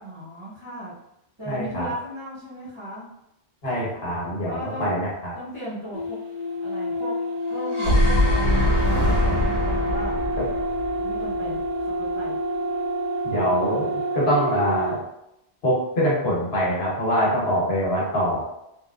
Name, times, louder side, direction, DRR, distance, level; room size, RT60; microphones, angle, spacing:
voice 1, 0.0-0.9 1.4-3.0 4.5-5.0 5.3-6.2 6.6-7.1 7.5-10.2 11.0-12.4, equal, 25° right, -12 dB, 0.9 m, -36 dB
voice 2, 1.5-1.9 3.6-5.3 10.4-10.5 13.2-15.0 15.6-18.4, equal, 60° left, -6 dB, 1.3 m, -24 dB
sound 1, 5.9-15.0, equal, 80° left, 1.4 m, -28 dB
sound 2, 7.5-11.7, equal, 75° right, 1.4 m, -22 dB
3.5 x 2.4 x 2.3 m, 0.84 s
omnidirectional pair, 1.2 m